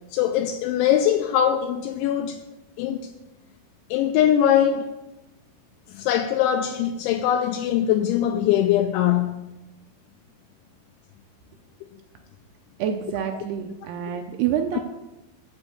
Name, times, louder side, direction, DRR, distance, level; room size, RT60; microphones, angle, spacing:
voice 1, 0.1-2.4 2.8-3.1 3.9-4.9 5.9-9.4, left 10 dB, 85° left, 2.8 m, -22 dB
voice 2, 12.8-14.8, right 9 dB, 90° right, 2.2 m, -27 dB
9.9 x 5.3 x 8.0 m
omnidirectional pair, 5.5 m